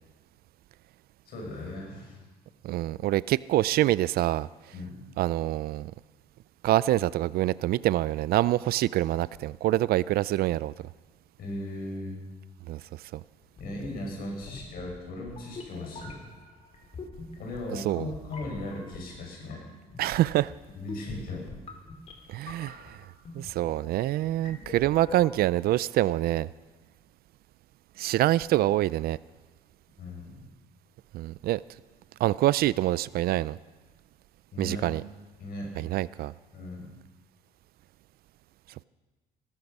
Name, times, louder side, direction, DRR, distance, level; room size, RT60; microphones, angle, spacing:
voice 1, 1.3-2.2 4.7-5.0 11.4-12.2 13.6-16.2 17.4-19.6 20.7-21.5 30.0-30.4 34.5-34.9 35.4-35.7 36.5-36.9, left 1 dB, 65° left, 6.4 m, -37 dB
voice 2, 2.6-4.5 5.2-5.9 6.6-10.7 12.7-12.8 13.1-13.2 17.7-18.1 20.0-20.5 22.3-23.0 23.3-26.5 28.0-29.2 31.1-31.6 32.2-33.6 34.6-35.0 35.8-36.3, right 15 dB, 65° right, 0.4 m, -26 dB
sound 1, 13.5-25.6, left 3 dB, 40° left, 2.7 m, -45 dB
18.5 x 13.0 x 5.4 m
cardioid pair, 110°, 17 cm